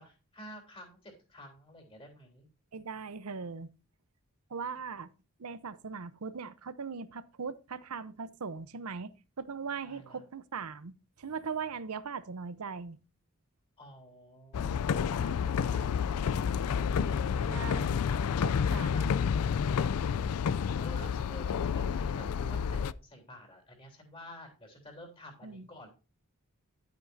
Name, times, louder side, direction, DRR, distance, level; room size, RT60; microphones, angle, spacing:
voice 1, 0.0-2.5 9.9-10.2 13.8-19.5 20.3-25.9, left 1 dB, 25° left, 3.3 m, -51 dB
voice 2, 2.7-3.7 4.5-5.1 5.4-10.9 11.2-13.0 17.5-18.0 18.7-19.2 25.4-25.7, right 5 dB, 90° right, 0.7 m, -39 dB
sound 1, 14.5-22.9, left 7 dB, 85° left, 0.4 m, -30 dB
11.5 x 8.2 x 2.6 m
head